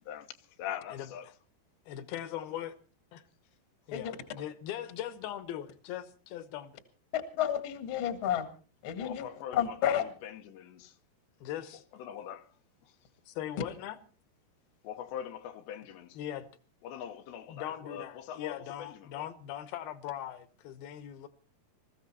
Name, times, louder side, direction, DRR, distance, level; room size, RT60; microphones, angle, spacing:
voice 1, 0.6-1.3 9.0-11.0 12.0-12.5 12.8-12.9 14.8-16.2 16.8-19.3, left 9 dB, 90° left, 3.3 m, -42 dB
voice 2, 1.9-2.8 3.1-3.2 3.9-6.8 11.4-11.8 13.3-14.0 16.1-16.5 17.5-21.3, left 11 dB, 70° left, 2.7 m, -40 dB
voice 3, 7.1-8.5 8.8-9.2 9.5-10.0, left 10 dB, 50° left, 1.6 m, -31 dB
21.0 x 14.5 x 4.2 m
omnidirectional pair, 4.9 m